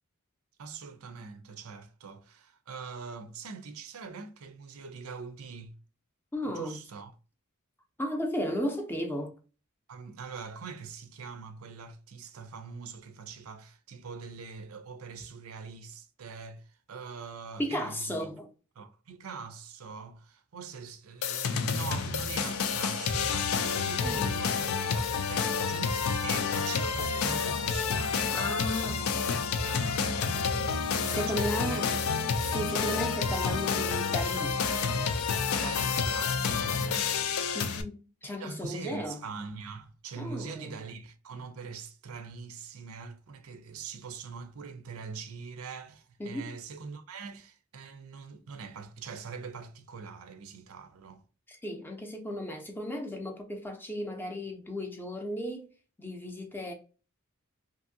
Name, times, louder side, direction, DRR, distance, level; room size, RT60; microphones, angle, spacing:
voice 1, 0.6-5.8 6.4-7.1 9.9-18.3 18.8-31.9 32.2-32.4 35.5-37.4 38.2-51.2, right 5 dB, 90° right, 0.5 m, -43 dB
voice 2, 6.3-6.8 8.0-9.3 17.6-18.5 24.0-24.3 28.3-29.0 31.0-32.0 32.4-34.6 37.5-39.2 40.2-40.8 46.2-46.5 51.5-55.7 56.0-56.7, equal, 10° left, 0.5 m, -35 dB
sound 1, 21.2-37.8, left 5 dB, 80° left, 0.4 m, -29 dB
2.7 x 2.7 x 2.6 m
head